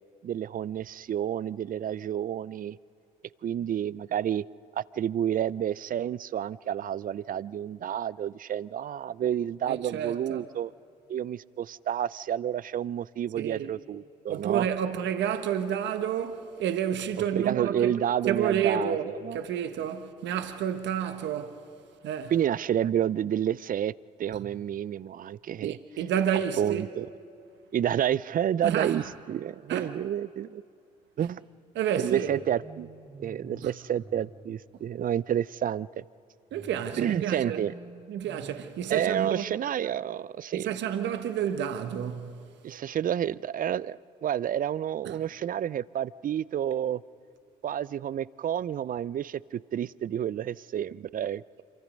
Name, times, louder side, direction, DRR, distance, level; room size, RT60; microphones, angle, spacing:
voice 1, 0.2-2.8 3.4-4.4 4.8-10.7 11.1-14.7 17.3-19.4 22.3-23.9 24.2-25.8 26.6-27.1 27.7-30.6 31.2-31.4 32.0-32.9 33.2-36.0 37.0-37.7 38.9-40.7 42.6-47.0 47.6-51.6, right 10 dB, 45° right, 0.5 m, -30 dB
voice 2, 9.7-10.4 13.3-13.7 14.3-17.9 18.3-19.1 19.3-21.6 22.0-22.3 25.6-26.8 28.6-29.1 29.7-29.9 31.7-32.3 36.5-37.6 38.1-39.4 40.5-42.4 45.0-45.2, right 9 dB, 65° right, 1.2 m, -30 dB
sound 1, 32.2-35.3 36.5-39.4, right 3 dB, 20° right, 2.6 m, -49 dB
27.0 x 24.5 x 5.3 m
hypercardioid pair, 50°, 20 cm